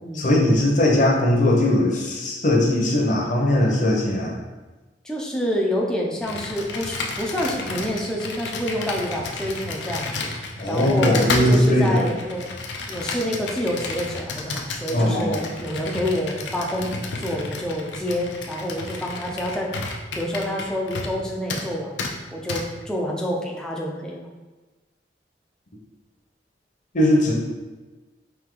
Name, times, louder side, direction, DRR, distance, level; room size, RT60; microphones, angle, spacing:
voice 1, 0.1-4.3 10.6-12.1 14.9-15.4 26.9-27.3, left 1 dB, 45° left, -1 dB, 0.8 m, -19 dB
voice 2, 5.0-10.3 10.6-12.5 12.9-19.7 20.1-24.3, equal, 5° left, -2 dB, 0.6 m, -28 dB
Computer keyboard, 6.2-21.2 21.5-21.7 22.0-22.1 22.5-22.6, left 3 dB, 90° left, 0.6 m, -32 dB
4.6 x 2.8 x 3.8 m, 1.2 s
head